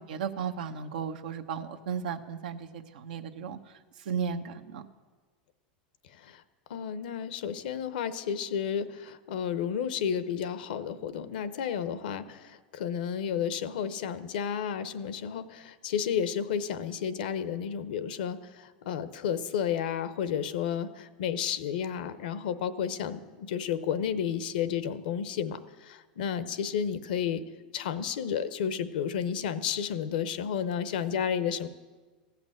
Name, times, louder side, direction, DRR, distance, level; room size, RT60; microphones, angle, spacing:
voice 1, 0.0-3.6 4.1-4.8, right 6 dB, 80° right, 7 dB, 0.9 m, -35 dB
voice 2, 6.7-27.4 27.7-31.7, left 8 dB, 75° left, 13 dB, 0.8 m, -32 dB
15.5 x 5.9 x 8.9 m, 1.3 s
hypercardioid pair, 105°, 5 cm